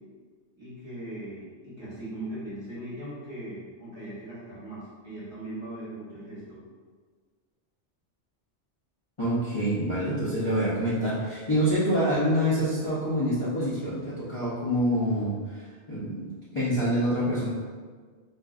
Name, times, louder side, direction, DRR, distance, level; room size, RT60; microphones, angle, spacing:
voice 1, 0.6-6.6, right 1 dB, 25° right, -10 dB, 1.4 m, -39 dB
voice 2, 9.2-17.5, equal, 30° left, -12 dB, 0.8 m, -26 dB
4.2 x 3.0 x 2.4 m, 1.5 s
omnidirectional pair, 1.2 m